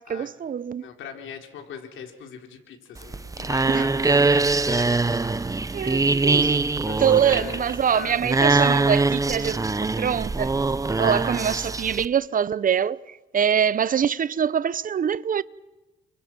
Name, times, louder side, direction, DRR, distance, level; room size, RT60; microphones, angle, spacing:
voice 1, 0.0-0.9 3.7-3.8 4.1-4.2 4.8-4.9 5.7-6.6 7.0-10.5 10.9-15.4, right 8 dB, 45° right, 0.8 m, -24 dB
voice 2, 0.8-5.3 5.9-6.3 6.8-8.2, left 7 dB, 80° left, 4.2 m, -40 dB
sound 1, 3.0-12.1, right 3 dB, 15° right, 0.9 m, -23 dB
30.0 x 25.5 x 6.2 m
cardioid pair, 90°, 20 cm